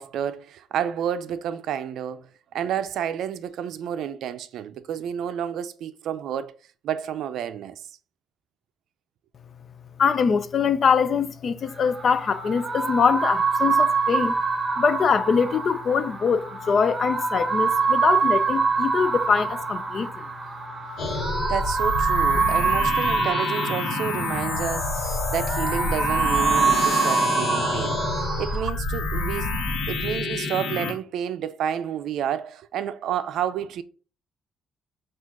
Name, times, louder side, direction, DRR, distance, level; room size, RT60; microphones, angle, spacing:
voice 1, 0.0-6.5 6.8-7.8 21.5-28.0 28.4-29.5 29.9-33.8, right 9 dB, 80° right, 0.4 m, -30 dB
voice 2, 10.0-14.4 14.8-20.2, left 6 dB, 50° left, 0.4 m, -23 dB
sound 1, 11.7-28.7, right 4 dB, 25° right, 0.7 m, -25 dB
sound 2, 21.0-30.9, left 3 dB, 75° left, 1.0 m, -28 dB
6.1 x 2.4 x 3.6 m
cardioid pair, 90°, 0 cm